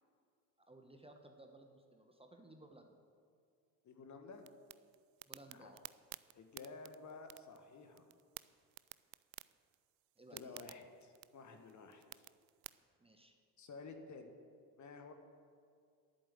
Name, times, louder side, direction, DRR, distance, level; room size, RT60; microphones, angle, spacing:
voice 1, 0.7-2.9 5.3-5.8 10.2-10.7 13.0-13.4, right 1 dB, 10° right, 4 dB, 1.2 m, -59 dB
voice 2, 3.8-4.4 5.5-5.7 6.3-8.1 10.3-12.3 13.6-14.3 14.8-15.1, left 4 dB, 35° left, 6 dB, 1.6 m, -52 dB
sound 1, 4.3-12.7, right 21 dB, 65° right, 0.5 m, -55 dB
11.0 x 8.6 x 7.7 m, 2.3 s
figure-of-eight pair, 55°, 48 cm